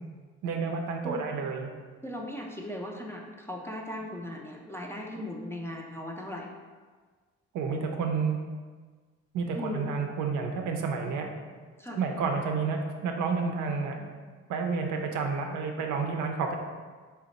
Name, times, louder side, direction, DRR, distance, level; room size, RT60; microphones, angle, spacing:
voice 1, 0.4-1.7 7.5-8.4 9.3-11.3 11.9-14.0 14.5-16.6, right 5 dB, 80° right, 3 dB, 0.6 m, -30 dB
voice 2, 2.0-6.5 9.5-9.9 11.8-12.0, left 1 dB, 10° left, -1 dB, 0.4 m, -37 dB
4.0 x 2.1 x 4.0 m, 1.5 s
cardioid pair, 90°, 30 cm